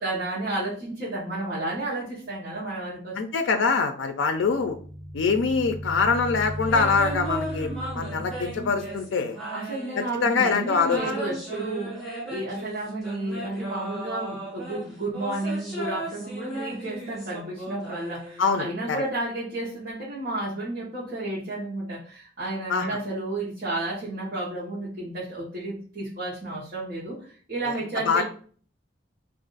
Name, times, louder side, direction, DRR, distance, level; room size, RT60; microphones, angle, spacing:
voice 1, 0.0-3.2 9.5-11.9 12.3-28.2, right 2 dB, 50° right, -9 dB, 1.0 m, -32 dB
voice 2, 3.2-4.8 5.1-9.4 10.0-11.0 18.4-19.0 22.7-23.0 28.0-28.2, left 5 dB, 85° left, 7 dB, 0.4 m, -24 dB
sound 1, 4.4-9.1, equal, 20° right, 1.3 m, -36 dB
sound 2, 6.7-10.4 10.8-18.7, right 1 dB, ahead, 1.1 m, -36 dB
2.5 x 2.4 x 3.8 m, 0.44 s
head